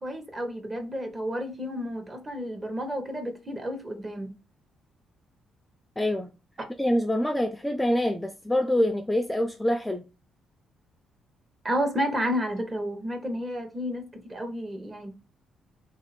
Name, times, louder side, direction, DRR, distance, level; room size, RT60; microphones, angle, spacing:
voice 1, 0.0-4.3 11.6-15.1, equal, 25° right, 1.0 m, -31 dB
voice 2, 6.0-6.3 6.8-10.1, left 1 dB, 10° left, 0.4 m, -25 dB
3.3 x 2.7 x 4.2 m
cardioid pair, 90°, 0 cm